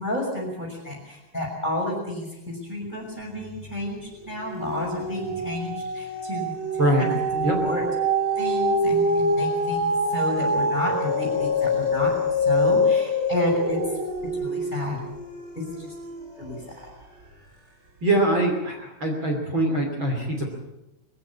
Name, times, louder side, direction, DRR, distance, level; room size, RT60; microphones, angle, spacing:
voice 1, 0.0-6.6 7.0-7.8 8.4-12.1 12.4-13.8 14.4-15.0 15.5-15.9 16.4-16.9, left 1 dB, 5° right, -1 dB, 6.1 m, -31 dB
sound 1, 3.3-3.9 4.2-16.7 17.3-17.4, left 1 dB, 20° right, 3.5 m, -25 dB
voice 2, 18.0-20.5, right 1 dB, 35° right, 1 dB, 3.3 m, -23 dB
22.0 x 15.5 x 8.6 m, 0.95 s
omnidirectional pair, 4.3 m